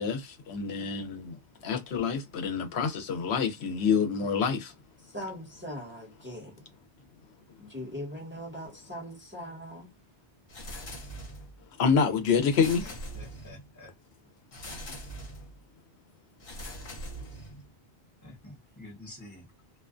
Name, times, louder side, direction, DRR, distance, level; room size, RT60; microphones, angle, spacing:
voice 1, 0.0-4.7 11.8-12.9, left 6 dB, 90° left, 0.9 m, -27 dB
voice 2, 5.1-6.5 7.6-9.9, equal, 10° right, 0.9 m, -40 dB
sound 1, 10.5-11.6 12.5-13.7 14.5-15.5 16.4-17.7, equal, 65° left, 1.2 m, -42 dB
voice 3, 12.4-13.9 18.2-19.4, left 1 dB, 20° left, 1.1 m, -47 dB
2.3 x 2.2 x 2.4 m
omnidirectional pair, 1.1 m